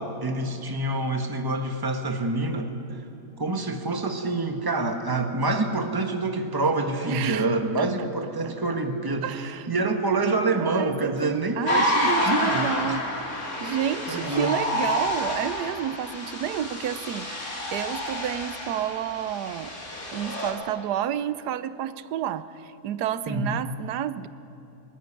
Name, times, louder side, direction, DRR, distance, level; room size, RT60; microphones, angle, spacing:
voice 1, 0.0-3.0 3.4-13.0 14.1-14.5 23.3-23.6, right 2 dB, 15° right, 5 dB, 1.2 m, -27 dB
voice 2, 7.1-7.5 7.8-8.1 8.4-8.5 9.2-9.7 10.6-17.3 17.7-19.7 20.1-24.3, right 10 dB, 90° right, 14 dB, 1.2 m, -30 dB
sound 1, 11.6-20.5, left 1 dB, 50° left, 3.0 m, -29 dB
20.5 x 13.5 x 9.9 m, 3.0 s
omnidirectional pair, 1.7 m